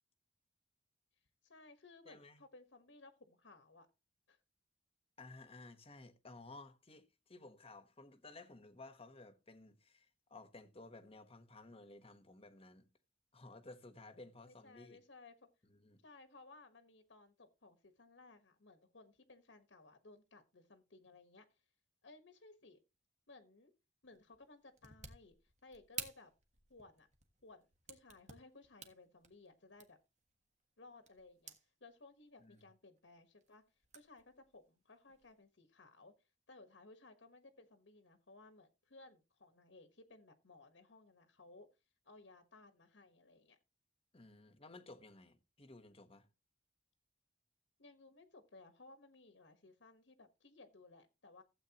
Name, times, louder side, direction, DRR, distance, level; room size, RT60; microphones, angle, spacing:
voice 1, 1.4-3.9 4.3-4.4 14.5-15.3 16.0-21.6 22.0-22.8 23.3-23.7 24.0-26.3 26.7-27.1 27.4-30.0 30.8-33.6 33.9-41.7 42.0-43.6 47.8-51.4, left 3 dB, 80° left, 1.4 m, -60 dB
voice 2, 2.0-2.4 5.2-12.9 13.3-15.0 15.7-16.0 32.4-32.6 44.1-46.3, left 2 dB, 30° left, 1.3 m, -56 dB
sound 1, 24.1-31.7 32.1-32.6 33.0-35.4, right 6 dB, 40° right, 1.4 m, -53 dB
15.5 x 8.0 x 3.0 m
head